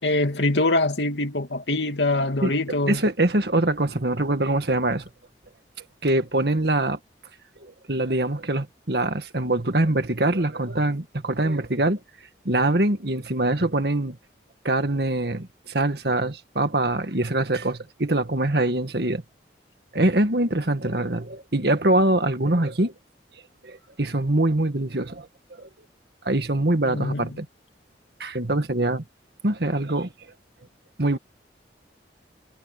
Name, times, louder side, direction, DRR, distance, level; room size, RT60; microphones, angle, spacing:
voice 1, 0.0-3.0 26.8-27.4, left 2 dB, 75° left, 2.7 m, -24 dB
voice 2, 2.9-5.1 6.0-7.0 7.6-12.0 12.5-14.2 14.6-19.2 19.9-22.9 23.6-25.3 25.6-25.7 26.2-27.5 28.2-29.0 29.4-30.1 31.0-31.2, right 1 dB, 60° right, 1.8 m, -23 dB
head